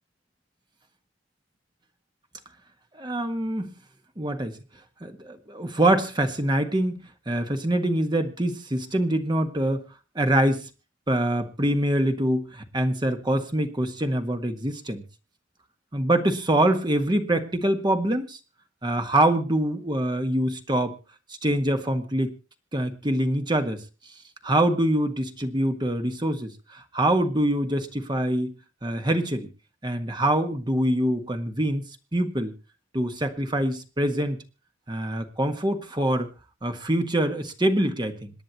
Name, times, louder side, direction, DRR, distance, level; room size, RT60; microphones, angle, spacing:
voice 1, 3.0-3.7 4.2-4.6 5.0-7.0 7.3-9.8 10.1-10.6 11.1-15.0 15.9-18.4 18.8-20.9 21.4-22.3 22.7-23.8 24.4-28.5 28.8-29.5 29.8-31.8 32.1-32.5 32.9-34.4 34.9-36.3 36.6-38.3, right 1 dB, 25° right, 6 dB, 1.6 m, -24 dB
27.0 x 10.0 x 3.0 m, 0.32 s
head